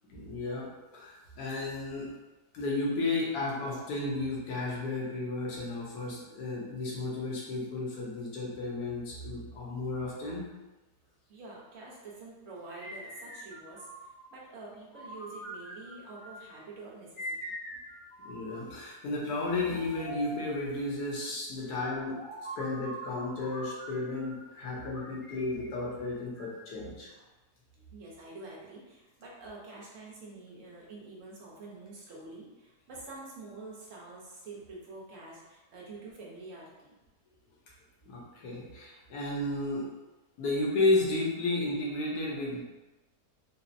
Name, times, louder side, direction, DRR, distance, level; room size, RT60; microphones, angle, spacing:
voice 1, 0.1-0.7 0.9-2.1 2.5-10.5 18.2-22.2 22.6-27.1 38.0-39.9 40.4-42.6, left 2 dB, 70° left, -4 dB, 1.3 m, -33 dB
voice 2, 11.3-17.4 24.5-24.7 27.1-27.3 27.9-37.0 41.0-41.1, right 3 dB, 60° right, -4 dB, 1.0 m, -47 dB
sound 1, 12.7-14.3 14.9-16.5 17.2-18.8 19.4-20.6 21.7-24.5 24.9-26.7, right 1 dB, 55° left, 0.6 m, -44 dB
4.0 x 2.0 x 2.5 m, 1.1 s
omnidirectional pair, 1.8 m